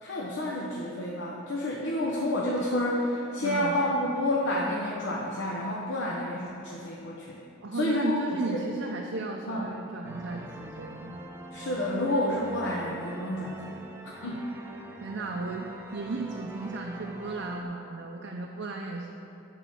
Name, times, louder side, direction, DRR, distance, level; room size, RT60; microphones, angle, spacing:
voice 1, 0.0-7.4 7.7-8.6 9.5-9.7 11.5-13.8 14.2-14.4, left 1 dB, 65° left, -4 dB, 0.9 m, -29 dB
voice 2, 3.4-3.7 7.6-11.2 15.0-19.1, right 3 dB, 65° right, 1 dB, 0.6 m, -35 dB
sound 1, 10.0-17.6, right 1 dB, 10° right, 0.4 m, -44 dB
11.0 x 4.0 x 6.2 m, 3.0 s
head